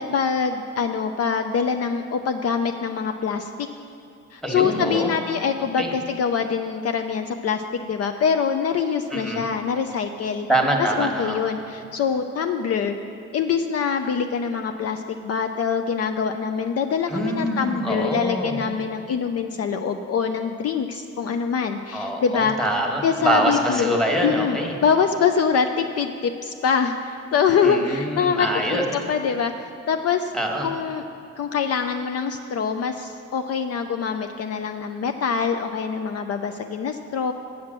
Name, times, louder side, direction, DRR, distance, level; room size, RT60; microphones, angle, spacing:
voice 1, 0.0-3.5 4.3-7.6 7.9-10.5 11.0-13.0 13.3-22.5 23.0-23.9 24.2-30.3 30.6-31.0 31.4-37.3, left 6 dB, 55° left, 6 dB, 0.5 m, -24 dB
voice 2, 4.4-5.1 5.8-5.9 9.1-9.4 10.5-11.4 17.1-18.6 21.9-24.7 27.6-28.8 30.3-30.7, right 1 dB, ahead, 1 dB, 1.4 m, -24 dB
8.5 x 5.7 x 7.5 m, 2.6 s
cardioid pair, 90°, 30 cm